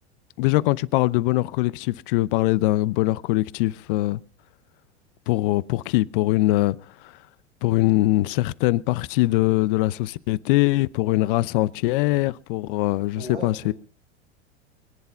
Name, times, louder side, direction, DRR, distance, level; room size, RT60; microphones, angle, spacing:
voice 1, 0.4-4.2 5.3-6.8 7.6-13.7, left 18 dB, 50° left, 0.8 m, -22 dB
voice 2, 13.1-13.7, right 1 dB, 90° right, 7.4 m, -36 dB
22.5 x 10.5 x 5.7 m
figure-of-eight pair, 85°, 33 cm